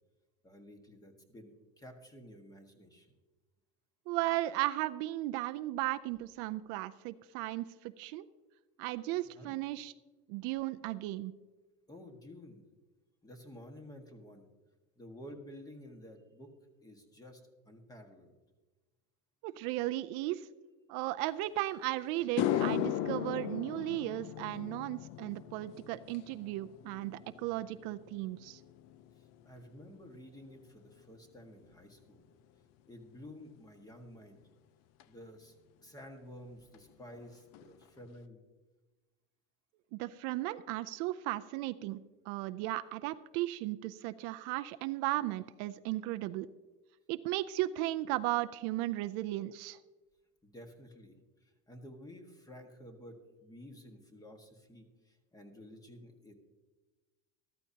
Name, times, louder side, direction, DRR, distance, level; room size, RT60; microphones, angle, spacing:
voice 1, 0.4-3.2 9.3-9.6 11.9-12.6 13.2-14.5 14.9-16.5 16.8-18.4 29.2-32.2 32.8-34.4 35.0-35.5 35.8-38.4 50.4-56.3, left 1 dB, 10° left, 4 dB, 1.6 m, -52 dB
voice 2, 4.1-8.3 8.8-9.9 10.3-11.3 19.4-20.5 20.9-28.6 39.9-42.0 42.3-46.5 47.1-49.8, right 16 dB, 65° right, 11 dB, 0.5 m, -35 dB
sound 1, 21.6-21.7 22.2-30.7 31.0-31.4 35.0-35.1 36.7-36.8 37.1-37.3 37.5-38.1, left 11 dB, 50° left, 0.6 m, -38 dB
13.5 x 13.5 x 2.8 m, 1.2 s
cardioid pair, 145°, 32 cm